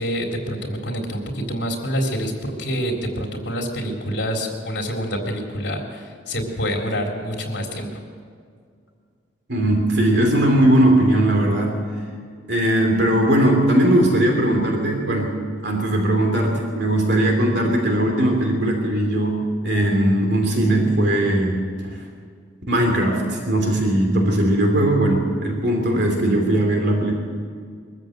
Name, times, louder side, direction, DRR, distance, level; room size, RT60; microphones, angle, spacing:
voice 1, 0.0-8.0, equal, 60° left, 1 dB, 3.9 m, -27 dB
voice 2, 9.5-11.8 12.5-15.4 15.6-22.0 22.7-27.1, right 1 dB, 60° right, 2 dB, 2.9 m, -19 dB
23.0 x 14.0 x 8.0 m, 2.1 s
head